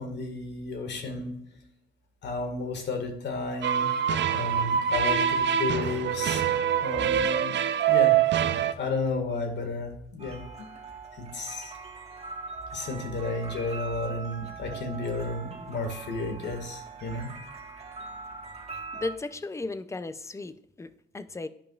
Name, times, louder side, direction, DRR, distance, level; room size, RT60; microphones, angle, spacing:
voice 1, 0.0-1.4 2.2-3.9 4.3-6.4 6.8-7.6 7.9-8.2 8.8-10.7 11.1-11.7 12.7-17.3, left 3 dB, 60° left, 4 dB, 1.9 m, -32 dB
sound 1, 3.6-8.7, right 9 dB, 65° right, 0.6 m, -24 dB
sound 2, 10.2-19.2, right 4 dB, 30° right, 1.6 m, -41 dB
voice 2, 18.9-21.5, left 3 dB, 15° left, 13 dB, 0.5 m, -35 dB
12.5 x 5.3 x 2.4 m, 0.75 s
cardioid pair, 90°, 20 cm